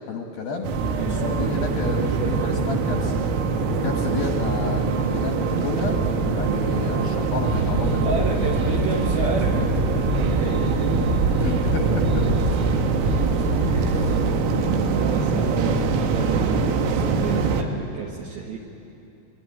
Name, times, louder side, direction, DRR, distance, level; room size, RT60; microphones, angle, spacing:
voice 1, 0.1-0.7 1.1-3.2 3.7-6.0 6.3-8.5 11.4-12.3 13.9-14.2, left 4 dB, 70° left, 3 dB, 2.3 m, -31 dB
sound 1, 0.6-17.6, right 4 dB, 90° right, 3.9 m, -23 dB
sound 2, 7.5-14.2, right 1 dB, 30° right, 2.6 m, -28 dB
voice 2, 8.0-9.8 10.3-11.2 13.6-14.1 14.5-18.6, right 4 dB, 70° right, 0 dB, 2.5 m, -32 dB
23.5 x 21.5 x 9.0 m, 2.8 s
omnidirectional pair, 5.7 m